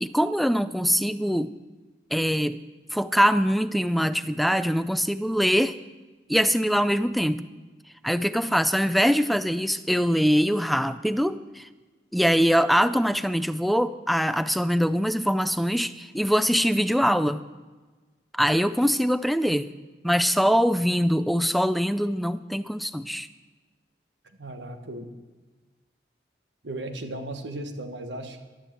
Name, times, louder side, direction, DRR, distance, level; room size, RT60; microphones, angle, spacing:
voice 1, 0.0-1.6 2.1-2.6 2.9-5.8 6.3-7.5 8.0-11.7 12.1-17.4 18.3-19.7 20.0-23.3, equal, ahead, 12 dB, 0.4 m, -23 dB
voice 2, 24.4-25.1 26.6-28.4, right 1 dB, 85° right, 6 dB, 1.5 m, -36 dB
11.5 x 11.5 x 7.5 m, 1.3 s
head